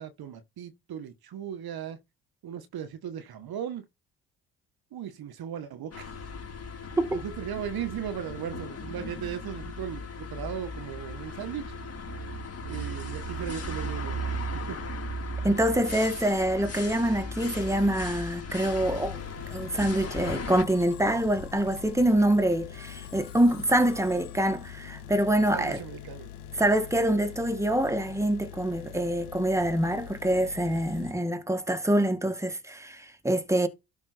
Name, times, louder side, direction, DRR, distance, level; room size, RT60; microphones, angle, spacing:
voice 1, 0.0-2.0 2.4-3.9 4.9-6.1 7.1-11.7 12.7-14.2 14.7-14.8 25.5-26.3, right 9 dB, 55° right, 1.7 m, -37 dB
sound 1, 5.9-20.6, left 1 dB, 35° left, 4.3 m, -37 dB
voice 2, 15.4-19.2 19.5-25.8 26.6-33.7, right 1 dB, 5° right, 2.1 m, -25 dB
sound 2, 18.7-31.1, left 10 dB, 85° left, 1.7 m, -44 dB
Musical instrument, 18.8-26.1, left 6 dB, 50° left, 4.2 m, -48 dB
12.5 x 5.2 x 4.5 m
hypercardioid pair, 60°, 43 cm